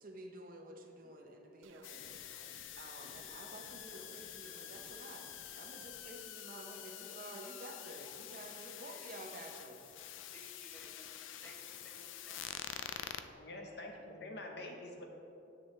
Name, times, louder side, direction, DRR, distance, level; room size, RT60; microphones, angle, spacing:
voice 1, 0.0-2.5 2.8-5.3 5.6-9.9, right 1 dB, 45° right, 2 dB, 0.7 m, -51 dB
sound 1, 1.6-6.0, right 4 dB, 80° right, 0.5 m, -61 dB
sound 2, 1.8-13.2, left 10 dB, 80° left, 0.4 m, -47 dB
voice 2, 6.7-7.1 8.0-8.1 10.3-12.9 13.5-13.8, equal, 10° left, -4 dB, 1.2 m, -60 dB
voice 3, 13.3-15.1, left 2 dB, 55° left, 2 dB, 0.9 m, -46 dB
10.0 x 7.1 x 3.3 m, 2.8 s
head